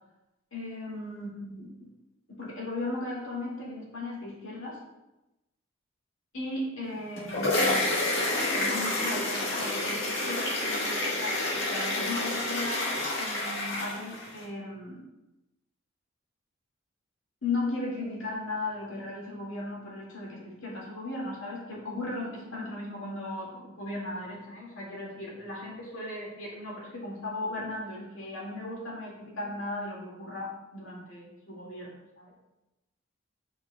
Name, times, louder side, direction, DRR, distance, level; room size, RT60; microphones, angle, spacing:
voice 1, 0.5-1.9 2.3-4.8 6.3-8.3 8.5-12.9 13.2-15.1 17.4-32.3, left 2 dB, 85° left, -4 dB, 2.0 m, -37 dB
sound 1, 7.0-14.4, left 1 dB, 70° left, 1.5 m, -29 dB
7.9 x 5.7 x 2.2 m, 0.99 s
head